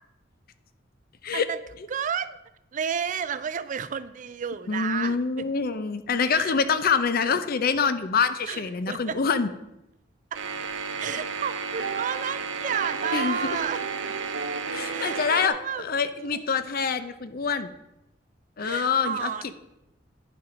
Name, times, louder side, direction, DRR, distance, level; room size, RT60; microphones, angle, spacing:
voice 1, 1.9-2.4 2.7-5.5 6.2-6.6 6.9-7.0 8.4-9.2 10.3-10.4 11.0-13.8 14.2-14.3 14.9-15.9 16.3-16.5 18.6-19.4, right 7 dB, 45° right, 15 dB, 0.4 m, -32 dB
voice 2, 4.7-9.5 13.1-13.6 14.7-17.7 18.6-19.5, left 5 dB, 55° left, 12 dB, 0.6 m, -26 dB
sound 1, 10.3-15.5, right 5 dB, 90° right, 0.8 m, -32 dB
10.0 x 6.0 x 5.0 m, 0.90 s
head